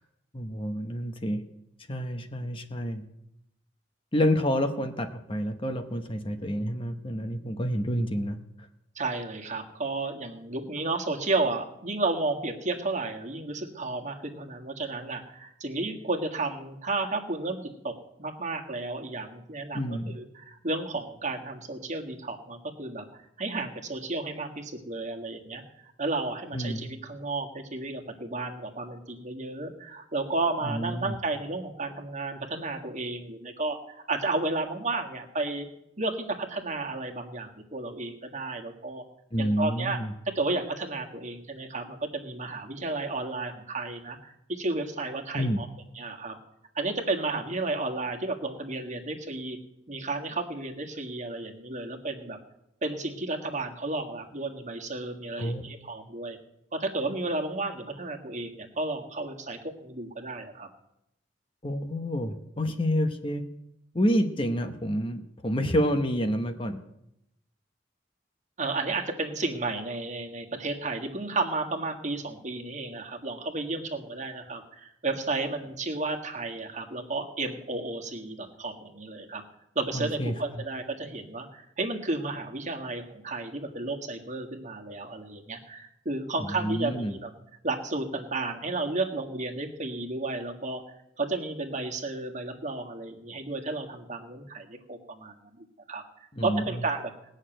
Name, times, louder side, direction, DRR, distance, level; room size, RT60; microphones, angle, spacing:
voice 1, 0.3-1.4 1.9-3.0 4.1-8.4 19.7-20.2 26.5-26.9 30.6-31.1 39.3-40.1 45.3-45.6 55.4-55.6 61.6-63.4 63.9-66.8 79.9-80.3 86.4-87.2 96.3-96.6, equal, 30° left, 7 dB, 1.0 m, -28 dB
voice 2, 8.9-17.9 18.2-23.0 23.4-35.7 36.0-39.0 39.4-40.0 40.3-45.7 45.9-46.4 46.7-49.6 49.9-52.4 52.8-56.4 56.7-60.7 68.6-79.4 79.7-87.3 87.6-90.8 91.2-96.0 96.4-97.1, right 3 dB, 40° right, 3 dB, 1.7 m, -32 dB
18.5 x 6.5 x 9.0 m, 0.82 s
head